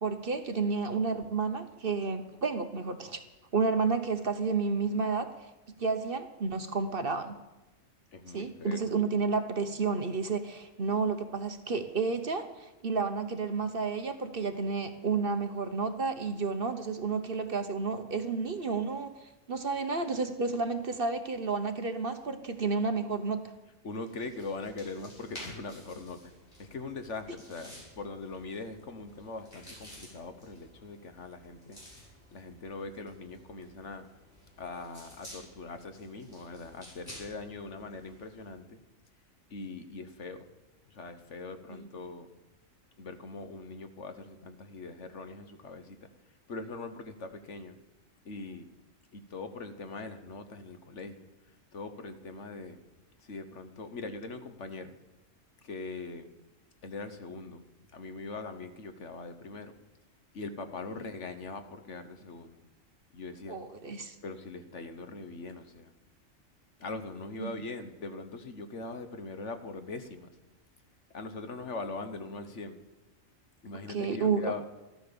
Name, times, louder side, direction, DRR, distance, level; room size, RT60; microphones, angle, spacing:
voice 1, 0.0-3.2 3.5-5.3 5.8-7.4 8.3-19.1 19.5-23.4 41.7-41.9 63.5-64.1 67.4-67.5 73.7-74.5, right 4 dB, 45° right, 8 dB, 1.2 m, -31 dB
voice 2, 8.1-9.0 23.8-26.3 26.6-31.8 32.3-34.1 34.6-38.8 39.5-40.4 40.9-42.3 43.0-46.0 46.5-47.7 48.2-48.7 49.1-51.3 51.7-52.8 53.2-54.9 55.6-56.3 56.8-57.6 57.9-59.7 60.3-62.6 63.1-63.6 64.2-65.9 66.8-70.3 71.1-72.8 73.6-74.6, left 3 dB, 60° left, 9 dB, 1.5 m, -41 dB
sound 1, 23.9-38.6, left 1 dB, 40° left, 7.3 m, -52 dB
14.5 x 13.5 x 7.0 m, 1.1 s
omnidirectional pair, 1.4 m